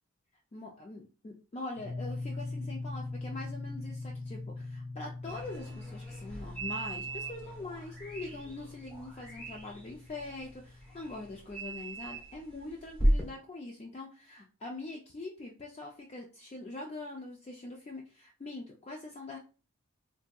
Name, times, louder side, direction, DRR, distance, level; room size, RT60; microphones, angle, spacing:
voice 1, 0.5-19.4, left 2 dB, 30° left, 0 dB, 0.3 m, -43 dB
sound 1, 1.8-11.3, left 2 dB, 80° left, 1.1 m, -42 dB
sound 2, 5.2-13.3, right 1 dB, 5° left, 0.8 m, -36 dB
3.4 x 2.6 x 2.2 m, 0.35 s
head